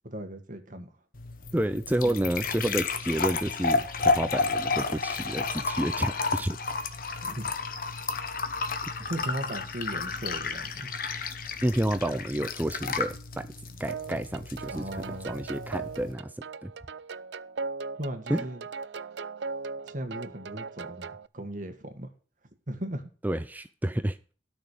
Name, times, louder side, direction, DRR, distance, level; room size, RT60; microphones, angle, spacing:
voice 1, 0.0-0.9 2.0-2.3 7.2-7.5 9.0-10.9 14.7-15.3 18.0-18.6 19.8-22.1 22.7-23.0, right 1 dB, 50° right, 1.8 m, -37 dB
sound 1, 1.1-16.1, left 4 dB, 55° left, 1.2 m, -32 dB
voice 2, 1.5-6.6 11.6-13.5 13.8-16.3 16.6-16.7 18.3-18.4 23.2-24.2, right 1 dB, 10° right, 0.5 m, -30 dB
sound 2, 13.9-21.3, right 4 dB, 85° right, 0.5 m, -38 dB
13.0 x 6.2 x 6.7 m
head